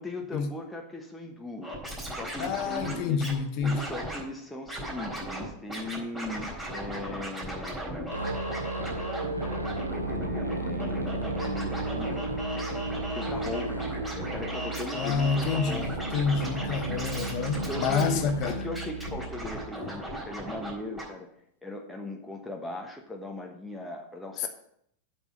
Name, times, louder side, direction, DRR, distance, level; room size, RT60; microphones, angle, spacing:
voice 1, 0.0-1.7 2.1-3.2 3.6-8.3 10.0-12.5 13.0-15.9 17.5-21.3 21.6-24.5, left 2 dB, 5° left, 1.2 m, -39 dB
Scratching (performance technique), 1.6-3.3 3.6-4.2 4.7-5.4 5.7-20.7 21.0-21.1, equal, 15° right, 4.2 m, -36 dB
voice 2, 2.4-3.9 14.9-18.6 24.4-24.5, left 5 dB, 40° left, 1.3 m, -28 dB
Musical instrument, 8.1-19.7, right 2 dB, 85° right, 0.7 m, -34 dB
8.5 x 6.2 x 7.2 m
figure-of-eight pair, 90°, 0 cm